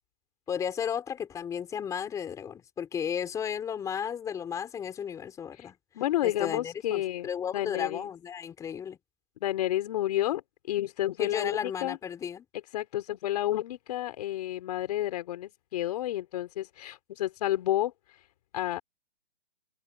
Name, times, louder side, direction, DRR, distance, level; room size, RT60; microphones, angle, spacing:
voice 1, 0.5-5.7 6.2-9.0 11.2-12.4, left 8 dB, 10° left, 4.8 m, -34 dB
voice 2, 5.9-7.3 7.5-8.1 9.4-10.4 10.7-12.0 12.7-17.9 18.5-18.8, left 14 dB, 35° left, 4.0 m, -30 dB
open air
hypercardioid pair, 165°, 36 cm